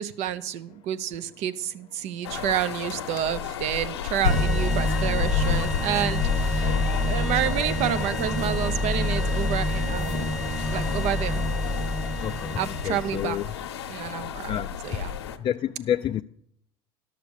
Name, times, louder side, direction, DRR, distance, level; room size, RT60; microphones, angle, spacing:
voice 1, 0.0-10.3 10.7-11.4 12.6-13.6 13.9-15.1, right 10 dB, 55° right, 0.8 m, -29 dB
sound 1, 2.2-15.4, left 8 dB, 85° left, 0.8 m, -32 dB
sound 2, 4.2-13.6, left 1 dB, ahead, 1.1 m, -27 dB
voice 2, 12.2-12.6 12.8-13.4 14.5-14.7 15.4-16.2, left 10 dB, 40° left, 0.4 m, -28 dB
11.5 x 6.7 x 6.4 m
hypercardioid pair, 85°, 13 cm